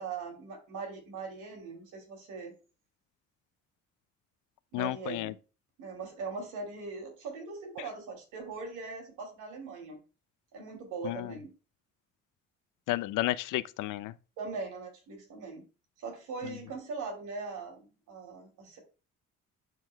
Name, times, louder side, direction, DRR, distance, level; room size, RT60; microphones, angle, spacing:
voice 1, 0.0-2.5 4.7-5.3 5.8-10.0 10.5-11.5 14.4-15.6 16.0-18.8, right 4 dB, 90° right, 2.9 m, -40 dB
voice 2, 4.7-5.3 11.0-11.3 12.9-14.1 16.4-16.5, left 17 dB, 90° left, 0.5 m, -32 dB
11.0 x 4.6 x 2.3 m
cardioid pair, 90°, 30 cm